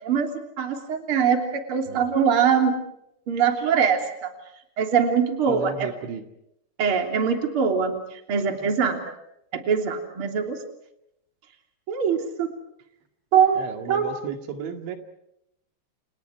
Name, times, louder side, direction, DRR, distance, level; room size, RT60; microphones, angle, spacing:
voice 1, 0.0-2.8 3.3-4.3 4.8-5.9 6.8-9.0 9.5-10.6 11.9-12.5 13.3-13.6 13.9-14.1, right 7 dB, 35° right, 4 dB, 3.4 m, -23 dB
voice 2, 5.5-6.2 13.6-15.0, right 7 dB, 90° right, 6 dB, 4.5 m, -34 dB
30.0 x 29.5 x 4.7 m, 0.79 s
omnidirectional pair, 5.2 m